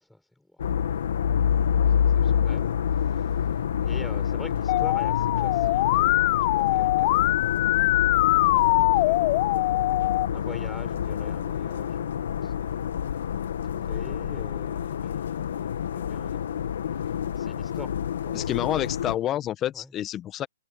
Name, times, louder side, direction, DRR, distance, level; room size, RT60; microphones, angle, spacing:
voice 1, 0.0-9.9 10.3-13.4 13.7-16.6 16.9-17.9 18.2-18.7 19.7-19.9, left 1 dB, 5° left, 6.9 m, -46 dB
sound 1, 0.6-19.2, left 8 dB, 70° left, 1.9 m, -27 dB
Musical instrument, 4.7-10.3, left 23 dB, 40° left, 0.7 m, -22 dB
voice 2, 18.3-20.5, left 12 dB, 20° left, 1.4 m, -28 dB
hypercardioid pair, 145°, 0 cm